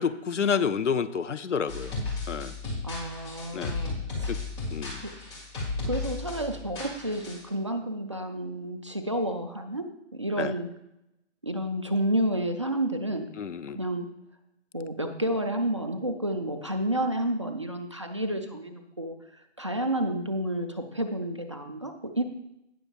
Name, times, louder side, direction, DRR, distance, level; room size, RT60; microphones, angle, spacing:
voice 1, 0.0-2.6 3.5-3.8 4.3-4.4 4.7-5.0 10.4-10.5 13.4-13.8, left 6 dB, 80° left, 14 dB, 0.6 m, -29 dB
sound 1, 1.7-7.5, left 3 dB, 10° left, 1.8 m, -34 dB
voice 2, 2.8-4.3 5.0-5.1 5.8-9.9 10.1-10.7 11.4-13.3 13.7-14.1 14.7-19.1 19.6-22.2, right 1 dB, 25° right, 5 dB, 0.4 m, -30 dB
17.5 x 6.2 x 2.4 m, 0.85 s
figure-of-eight pair, 150°, 36 cm